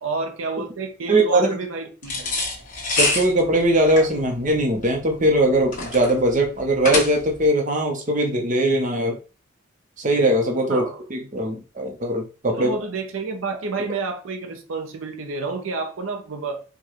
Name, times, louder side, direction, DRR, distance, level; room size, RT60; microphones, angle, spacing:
voice 1, 0.0-2.4 10.7-11.0 12.5-16.6, right 3 dB, 75° right, 0.6 m, -30 dB
voice 2, 1.1-1.5 3.0-9.2 10.0-10.8 11.1-12.8, right 1 dB, 35° right, 0.7 m, -20 dB
sound 1, 2.0-7.5, left 2 dB, 40° left, 1.2 m, -26 dB
4.6 x 2.3 x 3.0 m
head